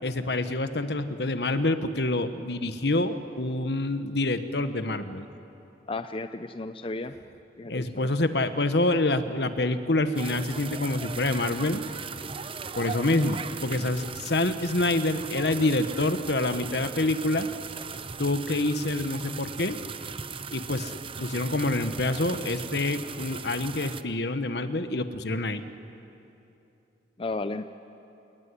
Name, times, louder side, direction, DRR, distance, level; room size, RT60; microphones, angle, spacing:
voice 1, 0.0-5.3 7.7-11.8 12.8-17.5 18.2-19.8 20.5-25.6, left 2 dB, 65° left, 10 dB, 1.3 m, -27 dB
voice 2, 5.9-7.2 7.6-8.1 27.2-27.7, left 2 dB, 30° left, 10 dB, 0.6 m, -34 dB
sound 1, 10.1-24.0, right 5 dB, 30° right, 0.7 m, -38 dB
29.0 x 18.0 x 9.8 m, 2.8 s
head